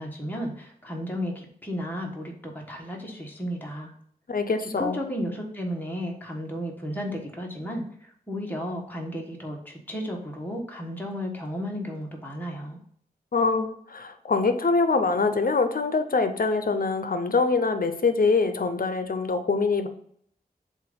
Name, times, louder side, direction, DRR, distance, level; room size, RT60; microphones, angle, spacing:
voice 1, 0.0-3.9 4.6-12.8, equal, 10° left, -1 dB, 1.3 m, -33 dB
voice 2, 4.3-5.0 13.3-19.9, left 4 dB, 60° left, 9 dB, 0.7 m, -24 dB
7.4 x 2.6 x 5.2 m, 0.63 s
wide cardioid pair, 70°, 16 cm